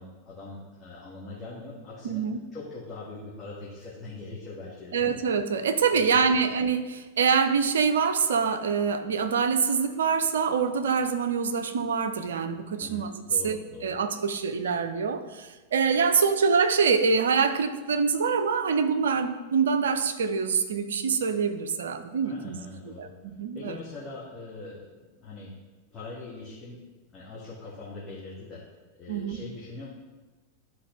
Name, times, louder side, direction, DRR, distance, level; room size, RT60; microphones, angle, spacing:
voice 1, 0.0-2.2 2.5-5.2 5.9-6.3 12.8-13.9 22.2-23.1 23.5-25.5 25.9-26.8 27.1-28.6 28.9-29.9, left 3 dB, 20° left, -7 dB, 1.6 m, -42 dB
voice 2, 2.0-2.4 4.9-13.1 13.4-13.6 13.8-22.6 23.0-23.1 23.4-23.8 29.1-29.4, right 5 dB, 65° right, 9 dB, 0.5 m, -25 dB
11.5 x 4.0 x 3.2 m, 1.2 s
figure-of-eight pair, 90°, 0 cm